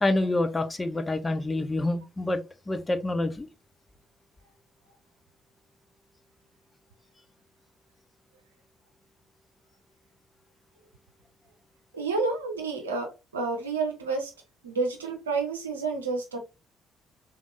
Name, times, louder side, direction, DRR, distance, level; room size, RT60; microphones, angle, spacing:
voice 1, 0.0-3.5, left 2 dB, 20° left, 0.7 m, -27 dB
voice 2, 11.9-14.3 14.6-16.4, right 4 dB, 90° right, 0.7 m, -30 dB
3.4 x 3.4 x 2.5 m
hypercardioid pair, 45°, 0 cm